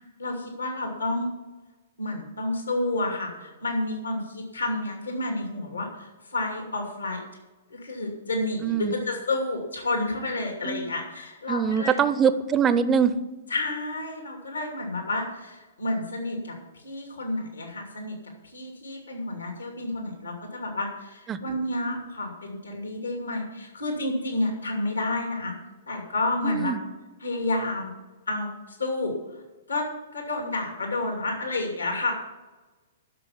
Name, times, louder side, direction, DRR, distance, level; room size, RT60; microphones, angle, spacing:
voice 1, 0.2-1.3 2.0-7.2 7.7-12.0 13.5-18.2 18.4-25.5 25.9-26.7 27.2-27.9 28.3-29.4 29.7-29.9 30.1-32.1, left 2 dB, 80° left, 2 dB, 2.6 m, -30 dB
voice 2, 8.6-8.9 10.7-10.9 11.5-13.1 21.3-21.4 26.4-26.8, right 7 dB, 20° right, 13 dB, 0.7 m, -23 dB
11.5 x 6.8 x 7.1 m, 1.2 s
figure-of-eight pair, 110°, 0 cm